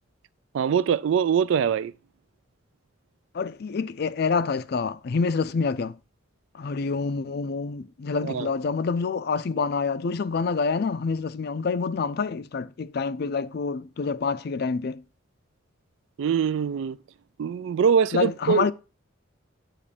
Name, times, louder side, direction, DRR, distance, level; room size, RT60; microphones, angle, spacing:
voice 1, 0.5-1.9 8.1-8.5 16.2-17.0 17.4-18.7, right 7 dB, 70° right, 0.3 m, -23 dB
voice 2, 3.3-6.0 6.5-15.0 18.1-18.7, left 4 dB, 50° left, 0.4 m, -27 dB
8.3 x 3.1 x 5.0 m
head